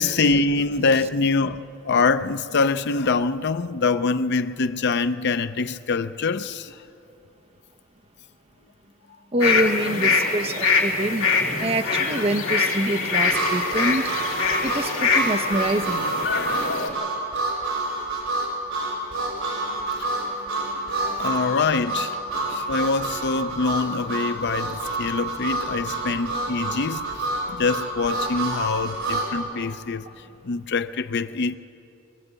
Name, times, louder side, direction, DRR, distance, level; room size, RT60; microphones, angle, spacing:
voice 1, 0.0-1.6 1.8-6.7 21.0-22.1 22.5-30.0 30.4-31.5, left 4 dB, 55° left, 0.6 m, -24 dB
voice 2, 9.3-11.3 11.6-14.1 14.6-16.1 16.9-17.1 20.2-20.3 21.1-21.2 22.4-22.5, right 1 dB, 30° right, 0.8 m, -26 dB
sound 1, 9.4-16.9, left 4 dB, 70° left, 3.2 m, -24 dB
Harmonica, 13.3-29.3, right 2 dB, 65° right, 5.5 m, -28 dB
23.0 x 15.0 x 8.2 m
head